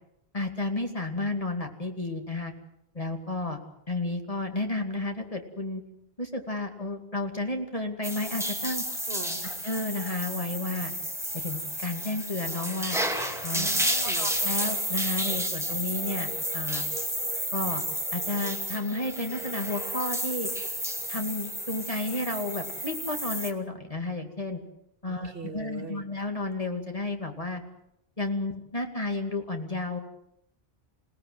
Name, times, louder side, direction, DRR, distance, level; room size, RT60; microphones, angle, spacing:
voice 1, 0.3-2.5 2.9-3.6 3.9-5.8 6.2-8.8 9.4-10.9 11.3-13.0 13.4-13.7 14.0-16.9 17.5-17.8 18.1-20.5 21.1-24.6 25.0-27.6 28.2-30.0, left 2 dB, 35° left, 4 dB, 2.6 m, -32 dB
sound 1, 8.0-23.5, equal, 5° right, 2.5 m, -31 dB
voice 2, 9.1-9.4 13.5-14.3 25.1-26.0, right 5 dB, 65° right, 8 dB, 2.2 m, -40 dB
28.0 x 18.0 x 7.9 m, 0.77 s
omnidirectional pair, 1.1 m